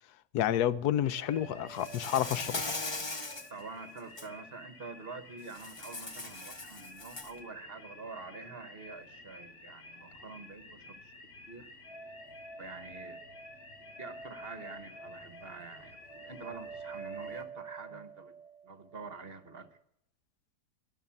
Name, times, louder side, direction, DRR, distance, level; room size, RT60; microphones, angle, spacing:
voice 1, 0.3-2.6, left 11 dB, 75° left, 1.2 m, -29 dB
sound 1, 1.0-17.4, left 2 dB, 50° left, 2.3 m, -52 dB
sound 2, 1.1-4.3 4.6-4.7 11.8-19.8, right 4 dB, 10° right, 0.3 m, -49 dB
Insect, 1.8-3.5 4.0-4.3 5.5-7.4, left 2 dB, 20° left, 0.8 m, -39 dB
voice 2, 3.5-11.1 11.5-11.7 12.6-13.2 14.0-16.0 16.2-18.3 18.6-19.8, right 4 dB, 40° right, 1.2 m, -46 dB
12.0 x 11.5 x 7.1 m
omnidirectional pair, 1.7 m